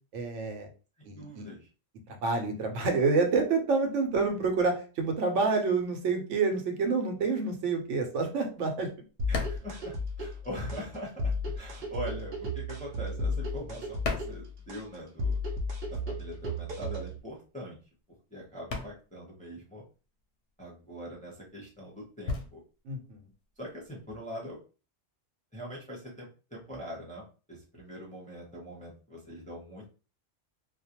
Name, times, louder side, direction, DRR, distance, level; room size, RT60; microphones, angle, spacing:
voice 1, 0.1-0.7 1.1-1.5 2.1-8.9 22.9-23.2, right 4 dB, 80° right, 4 dB, 1.0 m, -28 dB
voice 2, 1.0-1.7 9.3-15.4 15.9-17.8 18.3-19.8 20.6-22.6 23.6-24.6 25.5-29.9, equal, 10° left, -4 dB, 0.5 m, -42 dB
sound 1, 8.5-10.9 11.1-15.3 15.5-24.3, left 4 dB, 65° left, 0.7 m, -40 dB
sound 2, 9.2-17.2, left 1 dB, 60° right, 0.7 m, -34 dB
2.4 x 2.1 x 2.7 m, 0.35 s
omnidirectional pair, 1.2 m